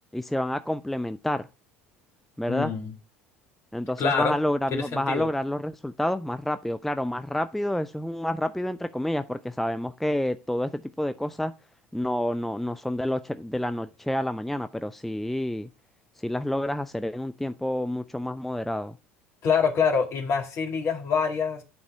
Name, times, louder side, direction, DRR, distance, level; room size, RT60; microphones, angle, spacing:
voice 1, 0.1-1.5 2.4-2.7 3.7-11.5 11.9-15.7 16.2-19.0, left 1 dB, 5° left, 0.4 m, -29 dB
voice 2, 2.5-2.9 4.0-4.4 4.7-5.3 19.4-21.6, left 6 dB, 40° left, 1.9 m, -25 dB
9.3 x 4.1 x 4.6 m
figure-of-eight pair, 65°, 7 cm